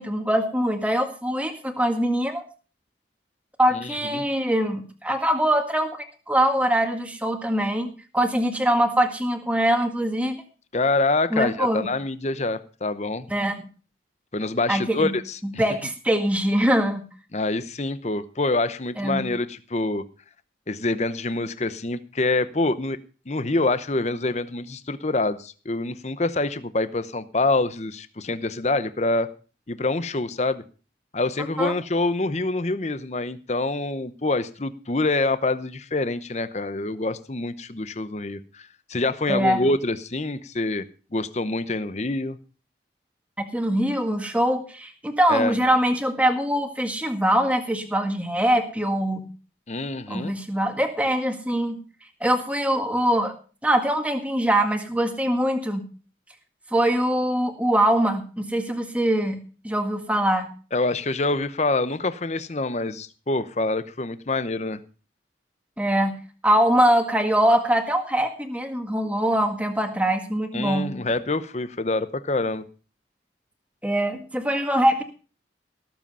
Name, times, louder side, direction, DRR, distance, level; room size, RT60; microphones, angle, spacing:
voice 1, 0.0-2.4 3.6-5.9 6.3-10.4 11.3-11.9 13.3-13.7 14.7-15.1 15.6-17.1 19.0-19.3 31.6-31.7 39.3-39.6 43.5-49.3 50.1-51.8 52.2-53.3 53.6-55.9 56.7-60.5 65.8-66.2 66.4-71.0 73.8-75.0, right 1 dB, 5° right, 5 dB, 1.8 m, -23 dB
voice 2, 3.7-4.3 10.7-13.3 14.3-15.6 17.3-20.1 20.7-23.0 23.3-29.3 29.7-30.6 31.1-40.8 41.1-42.4 45.3-45.6 49.7-50.3 60.7-64.8 70.5-72.6, left 2 dB, 40° left, 13 dB, 0.8 m, -26 dB
18.0 x 7.7 x 5.5 m, 0.38 s
head